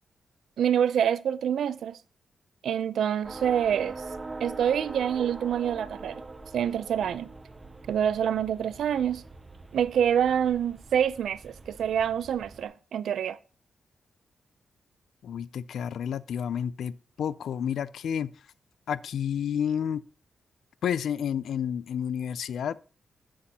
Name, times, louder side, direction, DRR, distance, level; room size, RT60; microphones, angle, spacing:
voice 1, 0.6-2.0 2.6-4.0 4.4-6.2 6.5-7.3 7.9-9.2 9.7-13.4, right 9 dB, 80° right, 0.4 m, -26 dB
sound 1, 3.2-12.7, right 3 dB, 15° right, 0.5 m, -43 dB
voice 2, 15.2-18.3 18.9-20.0 20.8-22.8, left 8 dB, 75° left, 0.3 m, -30 dB
9.9 x 7.6 x 2.8 m
wide cardioid pair, 180°, 0 cm